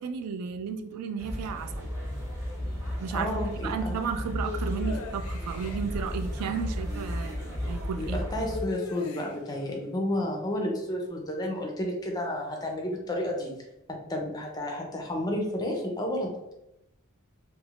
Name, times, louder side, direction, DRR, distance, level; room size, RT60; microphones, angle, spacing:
voice 1, 0.0-1.9 3.0-3.3 3.6-7.4 7.7-8.2, right 6 dB, 90° right, 10 dB, 0.3 m, -33 dB
sound 1, 1.2-8.6, equal, 15° right, 0.8 m, -34 dB
voice 2, 3.1-4.0 8.0-13.5 13.9-16.5, left 1 dB, 15° left, 0 dB, 0.5 m, -31 dB
sound 2, 4.5-5.8 8.4-9.6, left 4 dB, 70° left, 0.4 m, -38 dB
3.4 x 3.0 x 2.4 m, 0.87 s
head